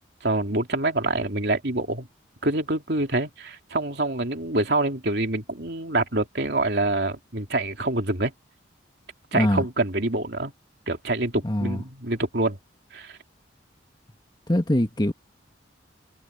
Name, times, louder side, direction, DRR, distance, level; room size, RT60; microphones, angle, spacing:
voice 1, 0.2-2.1 2.4-8.3 9.3-10.5 10.9-12.6 12.9-13.2, right 2 dB, 60° right, 3.0 m, -26 dB
voice 2, 11.4-11.8 14.5-15.1, left 1 dB, 25° left, 1.8 m, -22 dB
head